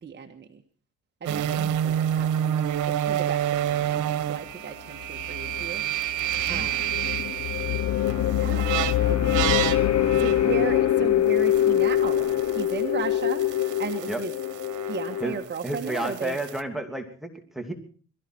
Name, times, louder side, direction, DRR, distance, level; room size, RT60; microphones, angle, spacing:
voice 1, 0.0-0.6 1.2-2.5 2.8-5.8 6.5-7.0 8.2-9.6 10.2-12.3 12.5-13.5 13.8-14.3 14.9-16.4, right 6 dB, 35° right, 3 dB, 1.6 m, -35 dB
voice 2, 1.3-1.7 6.4-6.7 14.1-14.2 15.2-15.4 15.6-17.7, right 1 dB, ahead, 5 dB, 2.8 m, -32 dB
sound 1, 1.3-12.8 13.1-16.6, right 11 dB, 90° right, 1.2 m, -30 dB
sound 2, 5.0-15.3, left 11 dB, 55° left, 0.8 m, -24 dB
22.5 x 14.0 x 4.5 m, 0.43 s
cardioid pair, 90°, 30 cm